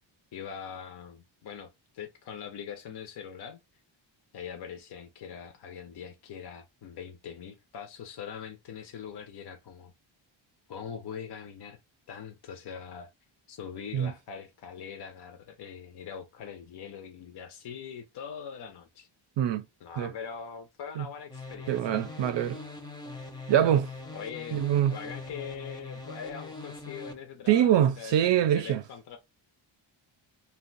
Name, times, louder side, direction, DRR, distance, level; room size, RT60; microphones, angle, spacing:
voice 1, 0.3-3.6 4.3-9.9 10.7-11.8 12.1-13.1 13.5-19.1 19.8-22.0 24.1-29.2, left 7 dB, 55° left, 0.6 m, -42 dB
sound 1, 21.3-27.1, left 3 dB, 10° left, 0.6 m, -42 dB
voice 2, 21.7-22.6 23.5-23.9 24.5-25.0 27.5-28.8, right 10 dB, 60° right, 0.5 m, -24 dB
2.6 x 2.2 x 3.8 m
cardioid pair, 115°, 49 cm